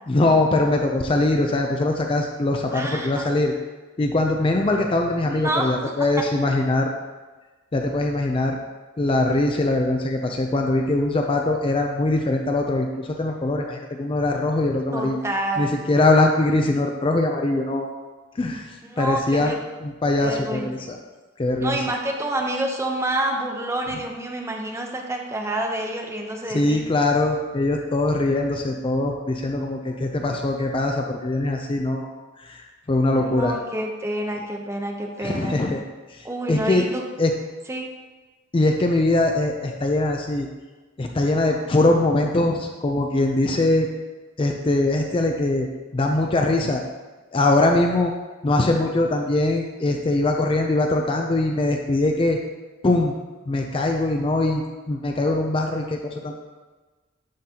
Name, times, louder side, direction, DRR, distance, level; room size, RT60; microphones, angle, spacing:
voice 1, 0.1-3.5 4.0-6.9 7.7-8.6 9.0-15.2 15.6-17.9 18.4-19.5 19.8-21.0 21.4-21.8 26.5-32.1 32.4-33.6 35.2-35.8 36.1-36.8 37.2-37.3 38.5-40.5 41.0-43.9 44.4-45.7 45.9-46.8 47.3-48.1 48.4-52.4 52.8-53.1 53.5-56.3, left 2 dB, 25° left, 2 dB, 0.4 m, -22 dB
voice 2, 2.7-3.4 5.2-5.7 14.9-15.8 18.8-19.6 20.2-20.9 21.6-26.8 33.2-35.6 36.2-37.0 37.7-37.9, right 1 dB, 15° right, 1 dB, 0.7 m, -28 dB
11.5 x 3.9 x 2.8 m, 1.3 s
head